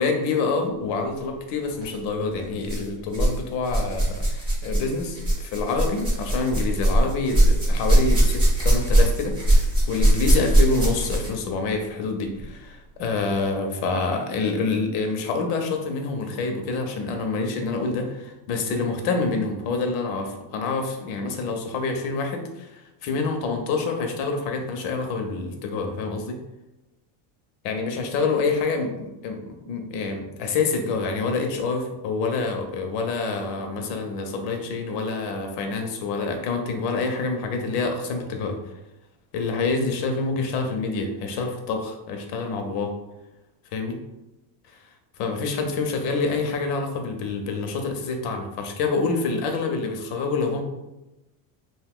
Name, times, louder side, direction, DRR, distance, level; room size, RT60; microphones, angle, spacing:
voice 1, 0.0-26.4 27.6-29.4 29.7-38.6 39.3-42.9 43.7-43.9 45.2-50.6, left 4 dB, 70° left, 4 dB, 0.7 m, -27 dB
sound 1, 1.7-1.9 2.6-3.4 3.6-11.4 12.4-12.5 13.3-13.4, right 1 dB, 10° right, 0.6 m, -20 dB
2.7 x 2.3 x 3.5 m, 0.98 s
cardioid pair, 180°, 50 cm